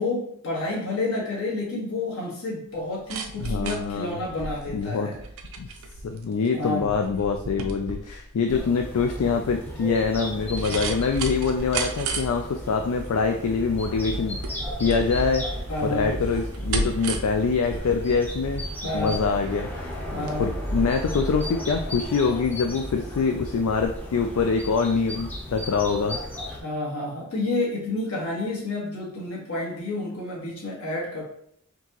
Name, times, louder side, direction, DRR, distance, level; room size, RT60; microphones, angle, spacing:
voice 1, 0.0-5.2 6.5-6.9 10.6-10.8 15.7-16.1 18.8-19.2 20.1-20.5 26.5-31.2, left 2 dB, 70° left, -4 dB, 1.5 m, -30 dB
sound 1, 2.7-20.4 20.7-20.8, right 3 dB, 70° right, 0.5 m, -35 dB
voice 2, 3.4-4.2 4.7-5.1 5.6-5.7 6.0-18.6 18.9-19.9 20.2-26.2, left 5 dB, 85° left, 4 dB, 0.4 m, -25 dB
sound 2, 8.5-26.6, equal, 10° left, 0.6 m, -34 dB
4.4 x 2.9 x 2.9 m, 0.70 s
head